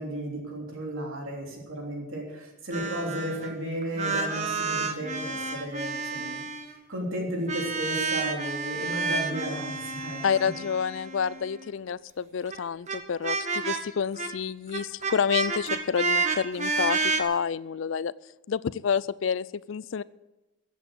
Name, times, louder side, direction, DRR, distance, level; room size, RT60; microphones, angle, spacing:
voice 1, 0.0-6.4 6.9-10.5, right 1 dB, 70° right, -1 dB, 3.5 m, -34 dB
sound 1, 2.7-3.5 3.8-6.7 7.5-11.7 12.5-12.6 12.9-13.0 13.2-13.8 14.2-14.3 14.7-17.2, right 4 dB, 35° right, 1.2 m, -30 dB
voice 2, 10.2-18.1 18.5-20.0, left 6 dB, 65° left, 19 dB, 0.4 m, -29 dB
14.5 x 8.3 x 7.7 m, 1.0 s
head